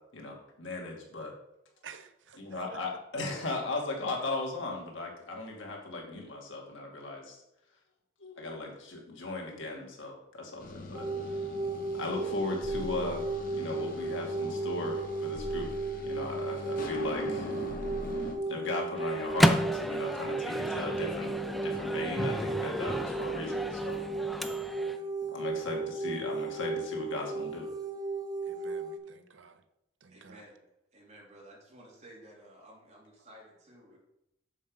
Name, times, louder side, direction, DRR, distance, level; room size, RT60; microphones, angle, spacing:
voice 1, 0.1-1.3 2.4-7.4 8.2-11.4 11.9-13.3 13.5-15.7 16.0-17.5 18.5-24.0 25.3-27.7, left 2 dB, 75° left, -1 dB, 2.4 m, -37 dB
voice 2, 1.8-2.8 24.7-25.1 25.6-25.8 28.4-29.6 30.0-30.4, right 6 dB, 70° right, 10 dB, 0.7 m, -52 dB
sound 1, 10.6-18.3, left 1 dB, 45° left, 1.4 m, -41 dB
sound 2, 10.9-29.0, right 3 dB, 20° right, 1.0 m, -35 dB
Microwave oven, 19.0-25.0, equal, ahead, 0.4 m, -32 dB
voice 3, 30.1-30.6 30.9-34.0, right 1 dB, 35° right, -3 dB, 2.9 m, -54 dB
7.3 x 6.6 x 5.5 m, 0.83 s
head